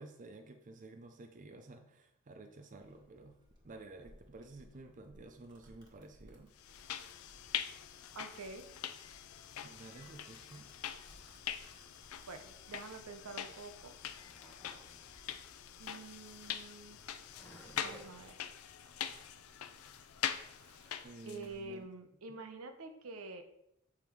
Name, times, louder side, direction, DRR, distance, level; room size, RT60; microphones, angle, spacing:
voice 1, 0.0-3.4 3.6-6.5 9.6-10.7 21.0-21.9 22.3-22.4, right 2 dB, 35° right, 6 dB, 0.5 m, -52 dB
Domestic sounds home sounds, 2.7-21.8, equal, 20° right, 1.5 m, -64 dB
sound 1, 6.6-21.5, left 9 dB, 80° left, 0.5 m, -44 dB
voice 2, 8.1-8.7 12.3-13.9 15.8-17.0 17.8-18.4 21.3-23.4, right 3 dB, 80° right, 7 dB, 0.8 m, -47 dB
Skateboard, 13.7-21.1, equal, 10° left, 1.0 m, -61 dB
6.7 x 3.6 x 4.6 m, 0.78 s
head